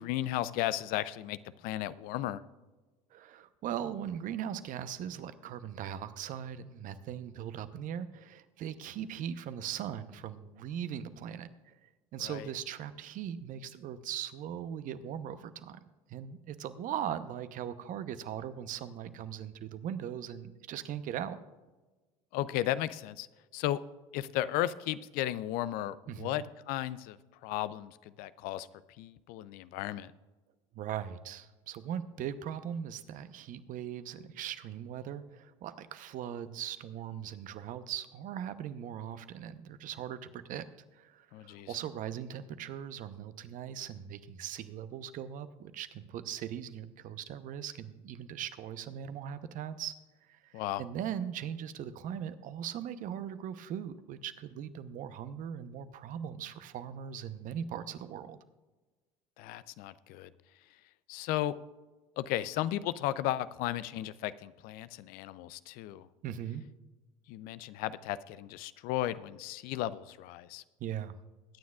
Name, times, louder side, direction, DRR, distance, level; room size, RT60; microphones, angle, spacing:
voice 1, 0.0-2.4 12.2-12.5 22.3-23.3 23.5-23.8 24.1-27.2 27.4-28.7 29.0-30.1 41.3-41.7 50.5-50.8 59.4-60.3 61.1-61.5 62.2-66.1 67.3-70.6, left 13 dB, 60° left, 16 dB, 0.5 m, -35 dB
voice 2, 3.1-15.8 16.1-21.4 26.1-26.5 30.7-40.6 40.9-49.9 50.3-50.5 50.8-58.4 66.2-66.6 70.8-71.1, right 9 dB, 50° right, 12 dB, 0.9 m, -39 dB
21.5 x 9.3 x 2.4 m, 1.2 s
hypercardioid pair, 70°, 17 cm